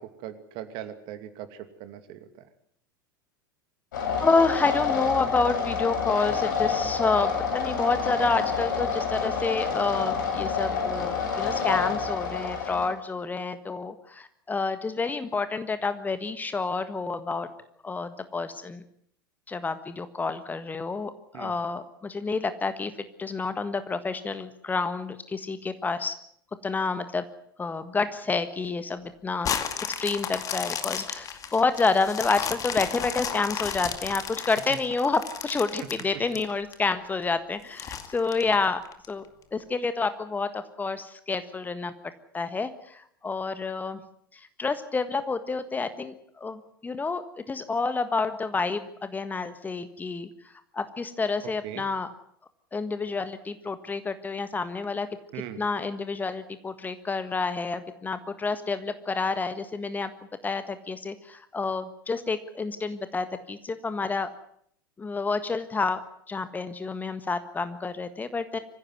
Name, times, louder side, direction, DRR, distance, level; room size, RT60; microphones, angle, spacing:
voice 1, 0.0-2.5 21.3-21.5 51.6-51.8 55.3-55.6, right 11 dB, 45° right, 9 dB, 2.7 m, -40 dB
sound 1, 3.9-12.9, left 6 dB, 65° left, 6.6 m, -28 dB
voice 2, 4.2-17.5 17.8-18.8 19.5-22.9 23.2-26.1 26.6-27.2 27.6-29.5 29.9-38.8 39.1-39.2 39.5-41.9 42.3-44.0 44.3-50.3 50.7-52.1 52.7-55.1 55.6-60.1 60.4-64.3 65.0-66.0 66.3-68.6, left 4 dB, 15° left, 11 dB, 1.5 m, -29 dB
sound 2, 29.4-36.7 37.2-37.3 37.8-39.1 39.6-39.7, left 8 dB, 30° left, 2.3 m, -33 dB
24.0 x 15.5 x 9.5 m, 0.67 s
figure-of-eight pair, 85°, 12 cm